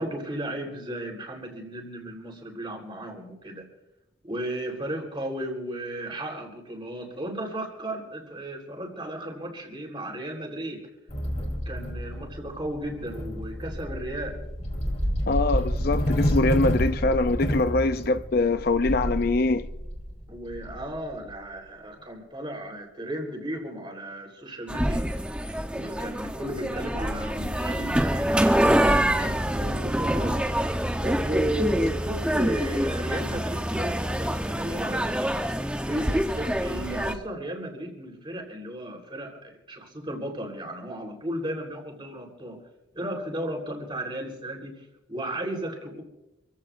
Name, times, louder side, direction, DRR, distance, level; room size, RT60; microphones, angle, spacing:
voice 1, 0.0-3.7 4.2-10.8 11.7-14.4 20.3-25.1 25.7-30.4 31.0-35.3 35.6-42.6 42.9-46.0, right 1 dB, 25° right, 3.9 m, -34 dB
sound 1, 11.1-21.3, equal, 35° left, 4.1 m, -29 dB
voice 2, 15.3-19.7, left 2 dB, 50° left, 0.5 m, -24 dB
sound 2, 24.7-37.1, equal, 5° right, 0.9 m, -26 dB
28.0 x 15.5 x 2.6 m
head